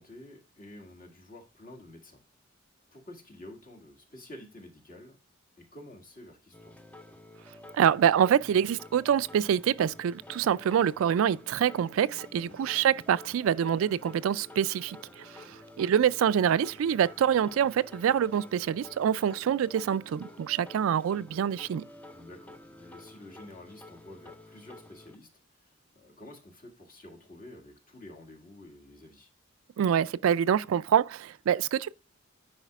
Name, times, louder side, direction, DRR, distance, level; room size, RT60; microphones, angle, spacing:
voice 1, 0.0-2.2 2.9-5.2 5.6-6.8 12.3-12.6 22.1-25.3 25.5-29.3, left 1 dB, 45° left, 1.8 m, -50 dB
sound 1, 6.5-25.2, left 2 dB, 5° left, 0.4 m, -50 dB
voice 2, 7.7-21.8 29.8-31.9, right 9 dB, 75° right, 0.3 m, -26 dB
9.7 x 5.0 x 2.3 m
head